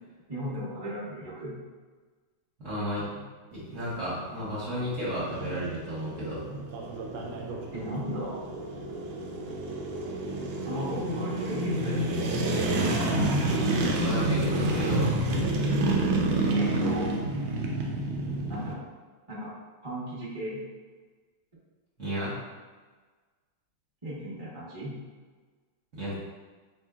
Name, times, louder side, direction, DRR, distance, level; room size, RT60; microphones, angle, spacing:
voice 1, 0.3-1.5 7.7-8.5 10.6-12.2 16.5-17.1 18.5-18.8 19.3-19.5 19.8-20.6 24.0-24.9, right 1 dB, 20° right, -10 dB, 0.8 m, -35 dB
voice 2, 2.6-3.3 3.5-6.4 13.5-15.2 22.0-22.4 25.9-26.1, equal, 45° right, -9 dB, 1.3 m, -33 dB
sound 1, 3.5-18.7, right 2 dB, 75° right, 1.2 m, -29 dB
4.4 x 3.3 x 2.4 m, 1.4 s
omnidirectional pair, 2.3 m